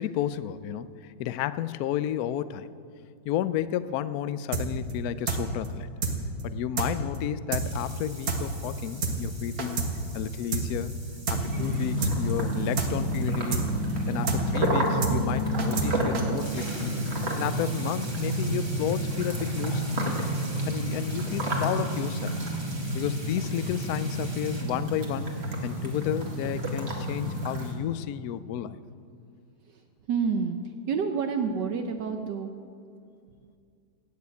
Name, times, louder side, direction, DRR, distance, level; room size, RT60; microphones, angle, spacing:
voice 1, 0.0-2.7 3.2-5.9 6.4-9.8 10.1-10.9 11.3-13.7 14.1-17.0 17.4-20.2 20.7-22.3 22.9-25.3 25.6-28.8, left 11 dB, 80° left, 14 dB, 0.8 m, -32 dB
sound 1, 4.5-4.6 4.9-5.0 5.3-5.4 5.6-5.7 6.0-6.1 6.4-6.5 6.8-6.9 7.1-7.2 7.5-7.6 7.9-8.0 8.3-8.4 8.6-8.7 9.0-9.1 9.4-9.9 10.1-10.2 10.5-10.6 10.9-11.0 11.3-11.4 11.6-11.7 12.0-12.1 12.4-12.5 12.8-12.9 13.1-13.2 13.5-13.6 13.9-14.0 14.3-14.4 14.6-14.7 15.0-15.1 15.4-16.2, right 4 dB, 50° right, 1.7 m, -28 dB
sound 2, 6.3-7.3 7.6-15.0 16.0-16.1 16.3-24.6, right 1 dB, 15° right, 1.6 m, -45 dB
sound 3, 11.3-27.7, right 1 dB, 35° right, 1.9 m, -30 dB
voice 2, 30.1-30.6 30.9-32.5, right 6 dB, 65° right, 5 dB, 1.3 m, -29 dB
18.0 x 6.8 x 8.3 m, 2.4 s
omnidirectional pair, 2.1 m